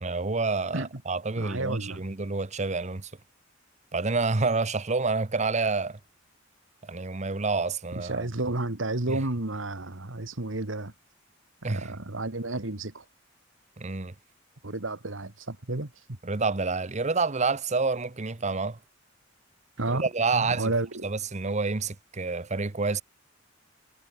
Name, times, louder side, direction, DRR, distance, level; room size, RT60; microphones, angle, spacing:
voice 1, 0.0-3.1 3.9-6.0 6.8-8.3 9.1-9.2 11.6-11.9 13.8-14.1 16.2-18.8 19.9-20.7 21.0-23.0, right 4 dB, 35° right, 0.9 m, -28 dB
voice 2, 1.4-2.0 7.9-10.9 11.6-13.0 14.6-15.9 19.8-21.0, right 2 dB, 80° right, 2.0 m, -31 dB
head